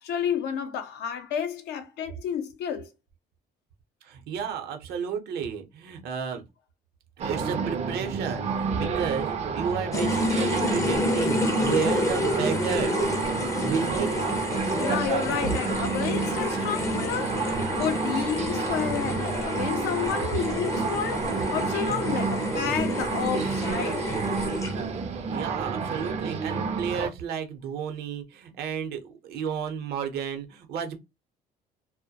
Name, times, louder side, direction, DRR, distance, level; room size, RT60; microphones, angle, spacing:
voice 1, 0.0-2.9 14.8-17.5 17.8-24.0, left 8 dB, 80° left, 0.6 m, -30 dB
voice 2, 4.0-6.4 7.2-13.4 13.6-14.1 15.4-15.5 25.3-31.0, right 7 dB, 75° right, 0.7 m, -32 dB
sound 1, 7.2-27.1, right 5 dB, 40° right, 0.5 m, -30 dB
sound 2, 9.9-25.0, left 1 dB, 20° left, 0.5 m, -29 dB
2.2 x 2.1 x 2.8 m
cardioid pair, 110°, 17 cm